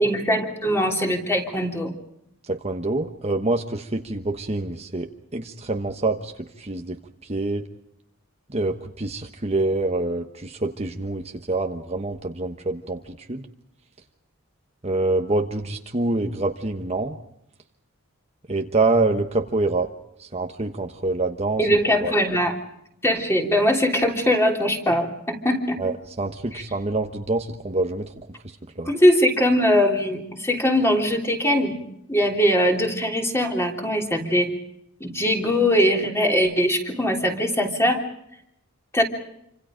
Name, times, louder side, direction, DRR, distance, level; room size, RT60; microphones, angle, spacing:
voice 1, 0.0-1.9 21.6-22.5 23.0-25.8 26.5-26.6 28.9-31.8 32.1-34.5 35.0-38.0 38.9-39.0, equal, 10° left, 2 dB, 3.4 m, -21 dB
voice 2, 2.5-6.3 6.6-7.6 8.5-13.5 14.8-17.2 18.5-19.9 20.2-21.6 22.0-22.1 25.8-28.3 28.8-28.9, right 2 dB, 30° right, 4 dB, 1.2 m, -26 dB
28.0 x 26.0 x 5.2 m, 0.78 s
head